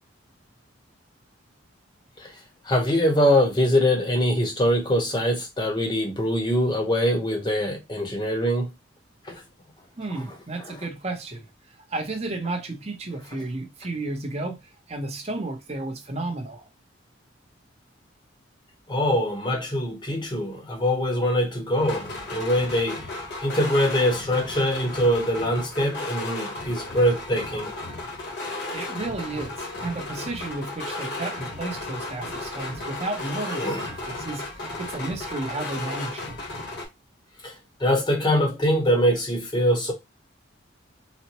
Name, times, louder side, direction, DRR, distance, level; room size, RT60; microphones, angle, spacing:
voice 1, 2.7-8.7 9.3-9.4 18.9-23.0 23.4-27.7 33.6-33.9 37.4-37.5 37.8-39.9, equal, 20° left, 0.8 m, -23 dB
voice 2, 10.0-16.7 28.7-36.4, right 2 dB, 30° right, 0.7 m, -33 dB
sound 1, 21.8-36.8, left 2 dB, 55° left, 1.1 m, -34 dB
4.1 x 2.1 x 2.9 m
head